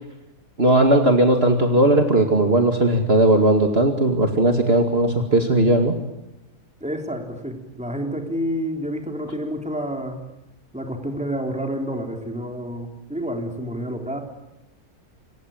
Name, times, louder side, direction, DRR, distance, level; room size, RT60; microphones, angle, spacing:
voice 1, 0.6-6.0, right 1 dB, 40° right, 4 dB, 2.5 m, -17 dB
voice 2, 6.8-10.2 10.7-14.2, equal, 5° right, 3 dB, 3.8 m, -29 dB
27.0 x 23.5 x 9.1 m, 0.91 s
omnidirectional pair, 1.6 m